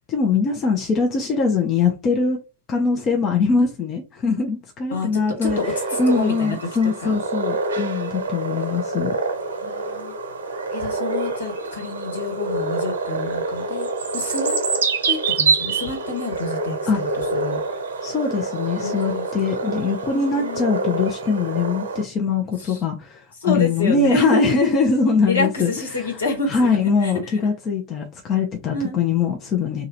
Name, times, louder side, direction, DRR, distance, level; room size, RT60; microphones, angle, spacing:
voice 1, 0.1-2.4 2.7-5.6 6.0-9.1 16.9-17.0 18.0-25.7 26.5-29.9, left 4 dB, 30° left, 0.9 m, -22 dB
sound 1, 5.4-22.0, right 3 dB, 65° right, 0.9 m, -26 dB
voice 2, 5.9-6.6 7.0-7.2 9.6-10.2 10.7-13.9 14.1-14.6 15.1-17.6 18.8-19.3 20.1-20.6 22.6-22.8 23.4-24.7 25.2-27.4 28.7-29.0, left 3 dB, 70° left, 1.7 m, -28 dB
3.3 x 2.6 x 4.0 m
figure-of-eight pair, 90°, 0 cm